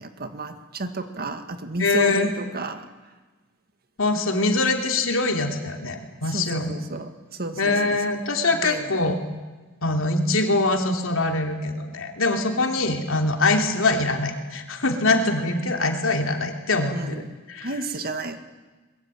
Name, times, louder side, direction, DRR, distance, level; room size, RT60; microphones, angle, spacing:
voice 1, 0.0-3.1 6.2-8.0 8.5-9.1 12.8-12.9 16.9-17.3 17.6-18.4, right 2 dB, 45° right, 8 dB, 1.8 m, -32 dB
voice 2, 1.8-2.3 4.0-6.8 7.6-9.2 9.8-17.0 17.5-17.7, left 2 dB, 70° left, 4 dB, 3.1 m, -23 dB
23.0 x 21.5 x 9.1 m, 1.3 s
head